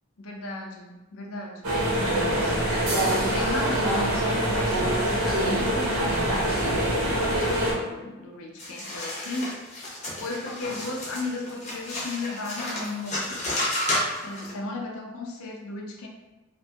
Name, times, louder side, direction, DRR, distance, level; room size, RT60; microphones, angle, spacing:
voice 1, 0.2-2.6 3.2-9.6 10.2-13.4 14.2-16.1, left 2 dB, 80° left, 1 dB, 0.5 m, -35 dB
sound 1, 1.6-7.7, right 1 dB, 90° right, 0.7 m, -24 dB
sound 2, 2.9-6.4, right 1 dB, 45° right, 0.7 m, -39 dB
sound 3, 8.6-14.5, left 1 dB, 30° left, 0.6 m, -31 dB
2.5 x 2.3 x 2.7 m, 1.1 s
head